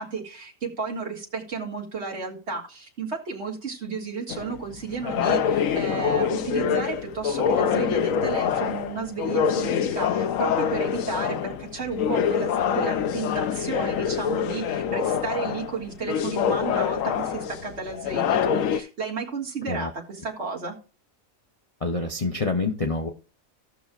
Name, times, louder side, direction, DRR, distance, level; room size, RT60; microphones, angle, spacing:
voice 1, 0.0-20.7, right 4 dB, 50° right, -1 dB, 2.2 m, -33 dB
sound 1, 4.3-18.8, left 8 dB, 70° left, 1.0 m, -25 dB
voice 2, 21.8-23.1, left 3 dB, 35° left, 3 dB, 0.7 m, -27 dB
17.0 x 6.1 x 2.4 m, 0.34 s
omnidirectional pair, 1.5 m